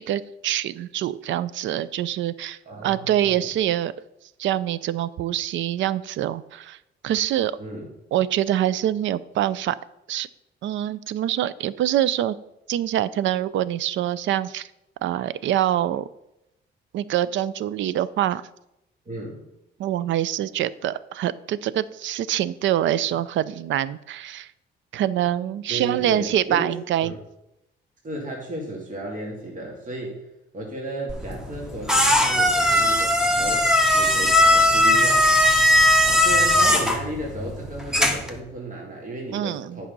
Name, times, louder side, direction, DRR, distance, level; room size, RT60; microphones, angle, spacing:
voice 1, 0.0-3.9 4.4-6.8 7.0-7.6 8.1-9.8 10.1-10.3 10.6-12.4 12.7-14.7 15.0-16.1 16.9-18.4 19.8-24.5 24.9-27.1 39.3-39.8, right 12 dB, 75° right, 18 dB, 0.5 m, -25 dB
voice 2, 2.7-3.5 7.6-7.9 19.1-19.5 25.7-26.7 27.0-27.1 28.0-30.2 30.5-35.3 36.0-39.9, right 1 dB, 40° right, -1 dB, 2.2 m, -34 dB
sound 1, 31.1-38.4, left 1 dB, 5° right, 1.2 m, -19 dB
8.6 x 5.7 x 5.3 m, 0.87 s
cardioid pair, 90°, 20 cm